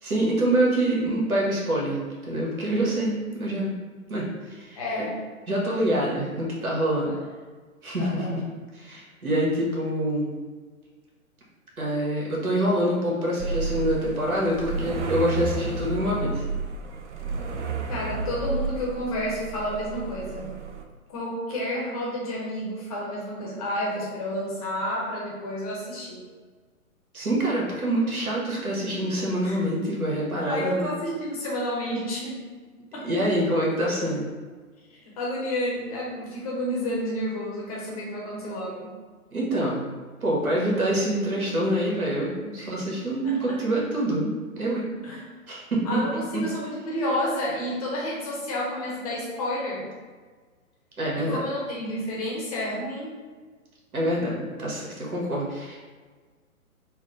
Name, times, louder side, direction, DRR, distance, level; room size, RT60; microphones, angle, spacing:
voice 1, 0.0-3.7 4.1-4.8 5.5-7.1 7.8-8.4 8.7-10.4 11.8-16.4 27.1-30.9 33.0-34.3 39.3-39.8 40.2-44.9 45.5-45.8 51.0-51.4 53.9-55.8, right 1 dB, 80° right, -4 dB, 1.4 m, -26 dB
voice 2, 4.8-5.2 7.0-7.2 8.0-8.4 17.9-20.5 21.1-26.2 29.4-29.6 30.4-32.4 32.9-33.1 35.2-38.9 42.6-42.7 43.2-43.6 45.0-45.2 45.8-49.9 51.1-53.1, left 1 dB, 25° left, -4 dB, 0.7 m, -30 dB
sound 1, 13.4-20.8, right 4 dB, 55° right, 0.5 m, -31 dB
3.5 x 2.2 x 3.8 m, 1.4 s
figure-of-eight pair, 130°, 43 cm